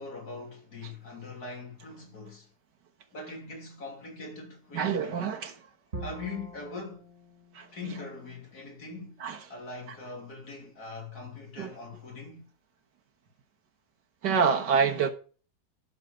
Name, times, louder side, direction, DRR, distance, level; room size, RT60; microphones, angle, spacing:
voice 1, 0.0-2.5 3.1-5.2 6.0-7.0 7.7-9.2 9.5-12.5, left 3 dB, 60° left, 3.5 m, -42 dB
voice 2, 4.7-5.6 7.5-7.7 9.2-9.4 11.6-11.7 14.2-15.1, right 6 dB, 75° right, 1.9 m, -26 dB
Bowed string instrument, 5.9-9.0, right 1 dB, 30° right, 1.9 m, -45 dB
11.0 x 6.9 x 5.1 m
omnidirectional pair, 1.9 m